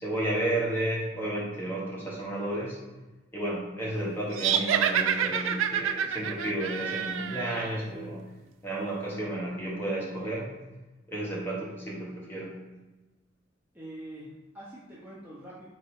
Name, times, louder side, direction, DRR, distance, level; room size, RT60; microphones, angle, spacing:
voice 1, 0.0-2.8 3.3-8.2 8.6-10.5 11.1-12.5, right 1 dB, 10° left, -6 dB, 1.1 m, -32 dB
sound 1, 4.3-7.8, right 8 dB, 90° right, 0.3 m, -28 dB
voice 2, 13.7-15.6, right 1 dB, 10° right, -8 dB, 0.7 m, -44 dB
3.8 x 3.0 x 4.7 m, 1.1 s
head